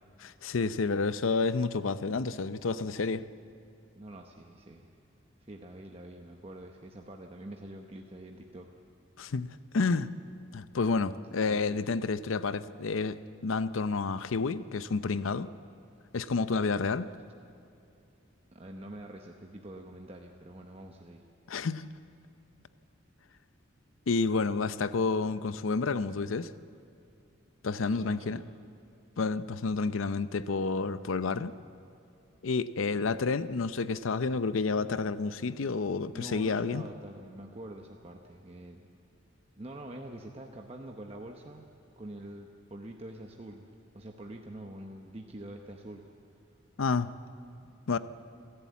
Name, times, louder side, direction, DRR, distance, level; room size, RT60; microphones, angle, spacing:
voice 1, 0.2-3.2 9.2-10.1 10.5-15.5 16.1-17.1 21.5-21.9 24.1-26.5 27.6-28.4 29.2-31.5 32.4-36.8 46.8-47.1 47.9-48.0, left 4 dB, 85° left, 14 dB, 0.6 m, -30 dB
voice 2, 3.9-4.9 5.5-8.7 11.4-11.8 18.5-21.2 27.8-28.3 36.1-38.9 39.6-41.6 42.0-43.7 43.9-46.1 47.6-47.8, right 1 dB, 30° right, 2 dB, 0.9 m, -45 dB
29.5 x 11.5 x 8.3 m, 2.5 s
head